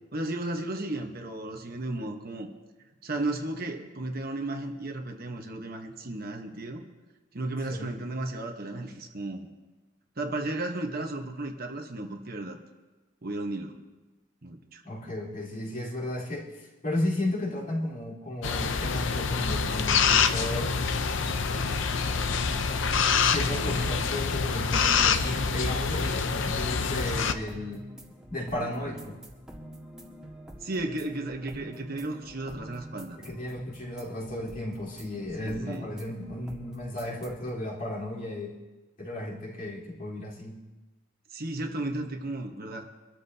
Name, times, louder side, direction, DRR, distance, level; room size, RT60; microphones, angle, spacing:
voice 1, 0.1-2.5 3.0-6.8 7.3-9.5 10.2-12.6 13.2-13.8 14.4-14.8 23.5-24.1 28.6-29.2 30.6-33.2 35.4-35.9 41.3-42.9, right 2 dB, 45° right, 3 dB, 1.1 m, -34 dB
voice 2, 14.8-20.9 23.2-27.9 28.3-29.2 33.2-38.5 39.0-40.6, left 1 dB, 40° left, -6 dB, 3.9 m, -34 dB
sound 1, 18.4-27.3, left 5 dB, 60° left, 0.7 m, -26 dB
sound 2, 21.4-37.5, equal, 5° right, 1.7 m, -47 dB
25.0 x 13.5 x 2.8 m, 1.2 s
head